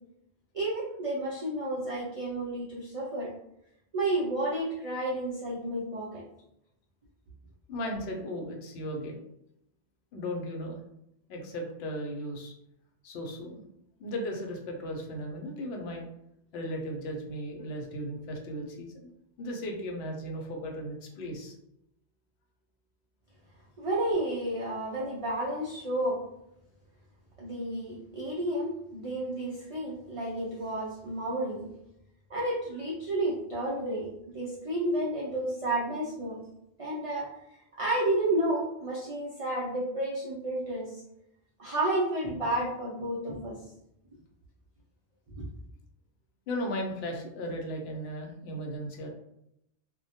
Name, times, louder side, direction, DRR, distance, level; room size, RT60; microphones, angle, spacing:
voice 1, 0.5-3.3 3.9-6.2 23.8-26.2 27.4-31.7 32.3-36.4 36.8-37.3 37.8-41.0 41.6-43.6 45.4-45.5, right 1 dB, 55° right, -5 dB, 0.3 m, -31 dB
voice 2, 7.7-9.2 10.1-10.8 11.3-12.5 13.0-13.6 14.0-16.0 16.5-19.1 19.4-21.5 46.5-49.1, equal, 70° left, 1 dB, 0.8 m, -36 dB
2.1 x 2.1 x 2.7 m, 0.80 s
omnidirectional pair, 1.1 m